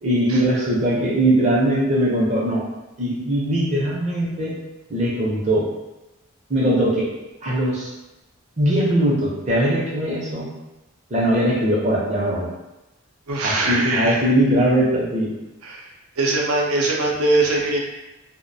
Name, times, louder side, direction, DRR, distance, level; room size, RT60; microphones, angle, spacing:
voice 1, 0.0-2.6 3.0-4.6 4.9-5.7 6.5-7.1 7.4-7.9 8.6-10.5 11.1-12.5 13.4-15.3, right 1 dB, 30° right, -5 dB, 0.5 m, -20 dB
voice 2, 13.3-14.2 15.6-15.9 16.2-17.8, right 2 dB, 90° right, -2 dB, 0.5 m, -21 dB
2.3 x 2.0 x 2.6 m, 1.0 s
head